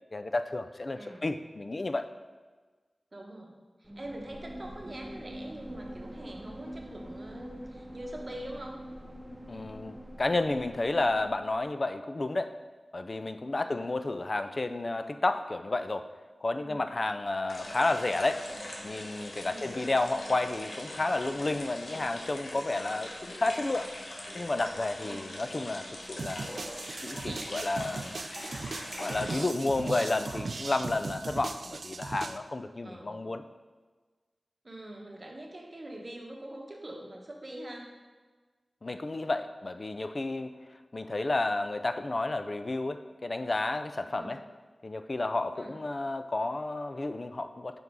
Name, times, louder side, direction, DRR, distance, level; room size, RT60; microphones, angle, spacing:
voice 1, 0.1-2.1 9.5-12.6 12.9-16.1 16.4-18.6 18.8-23.9 24.3-26.5 27.0-28.3 29.0-33.4 38.8-40.5 40.9-44.4 44.8-47.8, left 2 dB, 45° left, 9 dB, 0.4 m, -31 dB
voice 2, 0.9-1.3 3.1-3.5 3.8-8.8 13.6-13.8 16.6-16.8 19.5-19.8 25.0-25.3 27.2-27.6 32.8-33.2 34.6-37.9 44.2-44.4 45.5-45.7, right 1 dB, 40° right, 0 dB, 1.2 m, -44 dB
sound 1, 3.8-11.7, equal, 10° right, 0.7 m, -45 dB
sound 2, 17.5-30.7 31.0-32.1, left 1 dB, 75° left, 1.1 m, -42 dB
sound 3, 26.2-32.4, right 3 dB, 75° right, 0.3 m, -38 dB
5.8 x 5.3 x 4.7 m, 1.4 s
wide cardioid pair, 60°, 0 cm